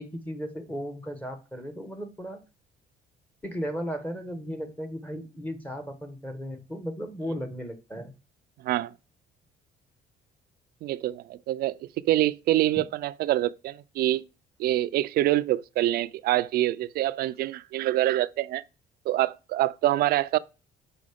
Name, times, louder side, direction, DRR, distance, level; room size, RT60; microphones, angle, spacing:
voice 1, 0.0-2.4 3.4-8.1, equal, 10° left, 1.2 m, -35 dB
voice 2, 10.8-14.2 14.6-18.6 19.1-20.4, right 14 dB, 65° right, 0.4 m, -25 dB
6.2 x 4.6 x 3.5 m
cardioid pair, 110°, 17 cm